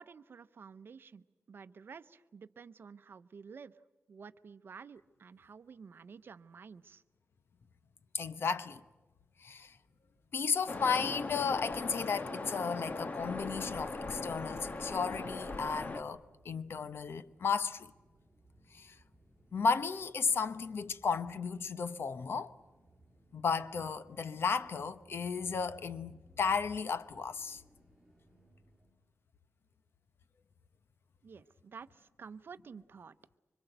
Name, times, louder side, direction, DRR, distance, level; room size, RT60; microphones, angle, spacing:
voice 1, 0.0-3.7 4.1-7.0 31.2-33.2, right 6 dB, 55° right, 0.8 m, -51 dB
voice 2, 8.1-8.8 9.4-9.8 10.3-17.9 18.7-19.0 19.5-22.5 23.3-27.6, left 5 dB, 65° left, 0.9 m, -34 dB
sound 1, 9.4-28.9, right 1 dB, 5° right, 6.7 m, -66 dB
Waves surf, 10.7-16.0, left 3 dB, 35° left, 1.3 m, -39 dB
26.0 x 25.0 x 8.0 m
wide cardioid pair, 150°, 4 cm